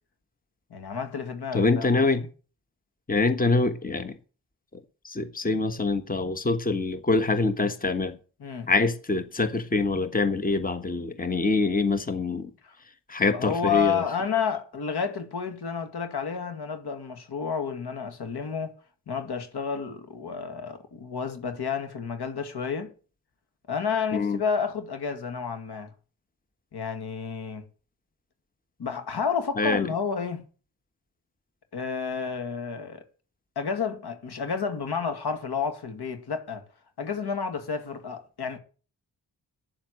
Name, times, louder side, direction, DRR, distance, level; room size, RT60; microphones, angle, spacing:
voice 1, 0.7-2.0 8.4-8.7 12.6-12.7 13.3-18.7 19.1-22.9 23.7-25.9 26.7-27.6 28.8-30.4 31.7-33.0 33.6-36.6 37.0-38.6, left 6 dB, 65° left, 2.2 m, -30 dB
voice 2, 1.5-2.2 3.1-4.1 5.0-8.2 8.7-12.5 13.1-14.0 24.1-24.4 29.6-29.9, left 3 dB, 20° left, 1.4 m, -25 dB
10.0 x 7.3 x 8.2 m
supercardioid pair, 40°, 42 cm